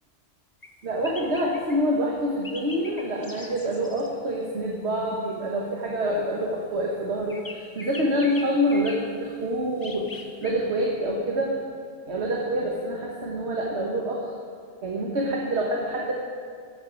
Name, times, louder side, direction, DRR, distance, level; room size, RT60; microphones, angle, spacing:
sound 1, 0.6-0.7 1.0-1.8 2.4-4.1 7.3-9.1 9.8-10.5, left 2 dB, 25° left, 0.5 m, -41 dB
voice 1, 0.8-10.1 10.4-11.6 12.1-14.3 14.8-16.1, equal, 65° right, -2 dB, 1.3 m, -26 dB
11.5 x 7.2 x 5.0 m, 2.2 s
omnidirectional pair, 1.2 m